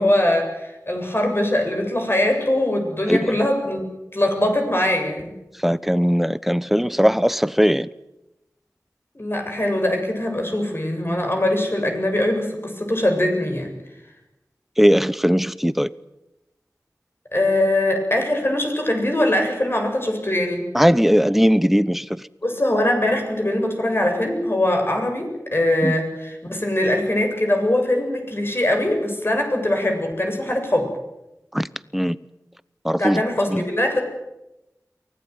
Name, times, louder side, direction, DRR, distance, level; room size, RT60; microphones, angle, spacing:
voice 1, 0.0-3.8 4.1-5.3 9.1-13.7 17.3-20.7 22.4-30.9 33.0-34.0, left 1 dB, 40° left, 7.5 m, -22 dB
voice 2, 5.6-7.9 14.8-15.9 20.7-22.2 25.8-25.9 31.5-31.7 31.9-32.2 32.8-33.2 33.5-33.6, equal, 5° right, 0.9 m, -19 dB
24.0 x 18.0 x 9.6 m
wide cardioid pair, 45°, 6 cm